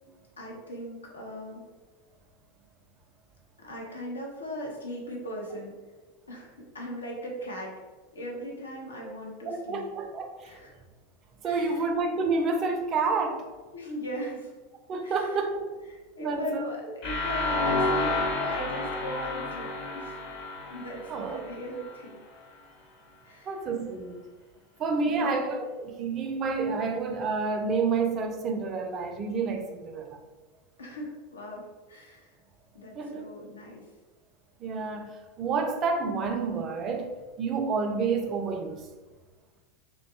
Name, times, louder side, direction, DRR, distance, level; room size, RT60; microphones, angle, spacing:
voice 1, 0.4-1.6 3.6-5.7 6.3-7.7 8.1-9.9 10.4-10.7 11.4-11.9 13.7-14.6 15.0-15.4 16.2-20.2 20.7-22.2 23.2-23.6 24.9-25.3 30.8-32.3 32.7-33.9, equal, 75° left, -2 dB, 0.6 m, -39 dB
voice 2, 9.5-10.6 11.4-13.4 14.9-15.8 16.2-16.6 21.1-21.4 23.5-24.3 24.8-30.2 33.0-33.2 34.6-38.9, right 4 dB, 30° right, 4 dB, 0.3 m, -29 dB
sound 1, 17.0-21.9, left 2 dB, 45° left, 0.9 m, -30 dB
2.7 x 2.1 x 2.6 m, 1.2 s
figure-of-eight pair, 85°, 0 cm